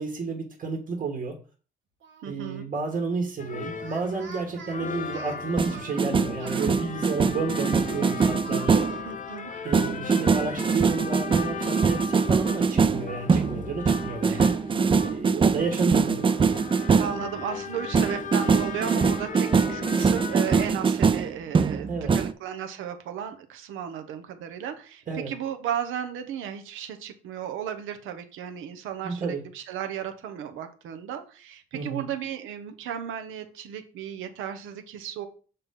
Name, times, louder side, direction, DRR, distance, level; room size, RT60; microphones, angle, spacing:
voice 1, 0.0-1.4 2.2-8.9 9.6-14.6 15.0-16.3 21.9-22.2 25.1-25.3 29.0-29.4 31.7-32.0, right 4 dB, 40° right, 1 dB, 1.5 m, -31 dB
Speech, 2.0-2.6 3.7-6.7 8.4-10.2 10.5-10.6 11.0-12.4, right 4 dB, 70° right, 1.4 m, -47 dB
voice 2, 2.2-2.7 9.0-9.5 14.3-14.5 17.0-35.3, right 9 dB, 90° right, 8 dB, 0.9 m, -35 dB
sound 1, 3.4-20.7, left 6 dB, 40° left, 0.8 m, -37 dB
sound 2, 5.6-9.0 9.7-17.2 17.9-22.3, right 5 dB, 25° right, 0.4 m, -23 dB
6.7 x 4.2 x 3.7 m, 0.38 s
cardioid pair, 90°, 20 cm